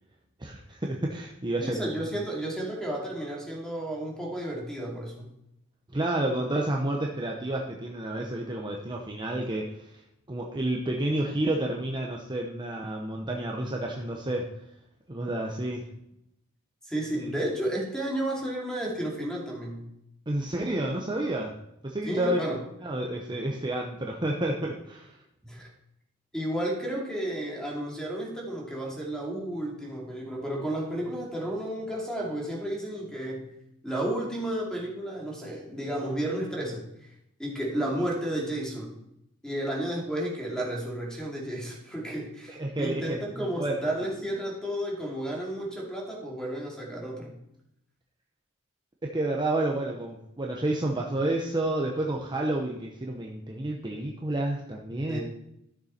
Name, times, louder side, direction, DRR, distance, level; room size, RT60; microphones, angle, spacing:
voice 1, 0.4-1.9 5.9-10.0 10.3-14.5 15.1-15.8 17.1-17.3 20.3-21.5 21.8-22.4 22.8-25.2 42.5-43.7 49.0-55.2, right 1 dB, 20° right, 0 dB, 0.8 m, -30 dB
voice 2, 1.6-5.3 16.8-19.9 22.1-22.6 25.4-25.7 26.3-33.5 33.8-37.1 37.4-38.9 39.4-47.3 55.1-55.2, right 1 dB, 5° left, -2 dB, 2.5 m, -32 dB
13.0 x 6.8 x 4.3 m, 0.81 s
head